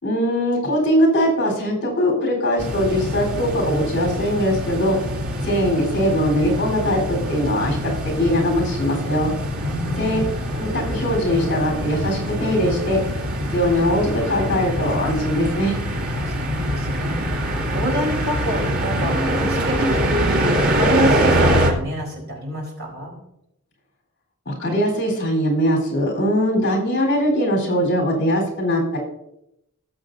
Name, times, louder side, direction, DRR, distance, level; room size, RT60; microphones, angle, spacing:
voice 1, 0.0-5.0 5.4-7.8 8.2-9.3 10.0-10.2 10.5-13.0 13.5-15.8 24.5-29.0, equal, 50° left, -1 dB, 3.7 m, -21 dB
sound 1, 2.6-21.7, equal, 80° right, 2.7 m, -24 dB
voice 2, 9.6-10.3 16.1-23.2, right 1 dB, 50° right, -1 dB, 3.9 m, -28 dB
18.5 x 7.7 x 2.6 m, 0.83 s
head